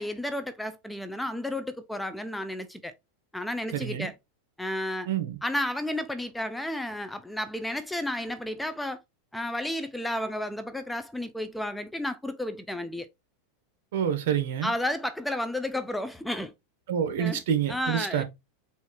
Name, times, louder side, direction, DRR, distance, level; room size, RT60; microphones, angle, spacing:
voice 1, 0.0-2.9 3.3-4.1 4.6-5.1 5.4-9.0 9.3-13.1 14.6-16.5 17.2-17.4 17.7-18.2, left 1 dB, 5° left, 0.3 m, -32 dB
voice 2, 3.7-4.1 5.1-5.4 13.9-14.7 16.9-18.2, right 9 dB, 65° right, 1.1 m, -27 dB
4.3 x 2.4 x 4.1 m
supercardioid pair, 155°, 0 cm